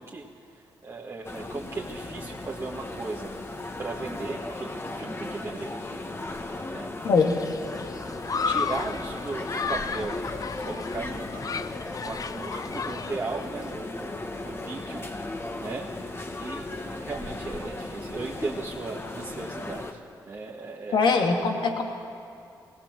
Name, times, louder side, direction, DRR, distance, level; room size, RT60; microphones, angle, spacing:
voice 1, 0.0-3.3 3.8-5.7 6.7-6.9 8.4-10.2 10.6-11.3 12.0-15.1 15.6-15.9 16.4-21.4, right 3 dB, 35° right, -3 dB, 1.7 m, -37 dB
sound 1, 1.2-19.9, left 2 dB, 30° left, 1.6 m, -36 dB
Human group actions, 7.2-13.7, left 5 dB, 45° left, 0.6 m, -34 dB
voice 2, 20.9-21.8, left 4 dB, 70° left, 3 dB, 2.0 m, -22 dB
19.0 x 18.0 x 7.6 m, 2.4 s
cardioid pair, 65°, 8 cm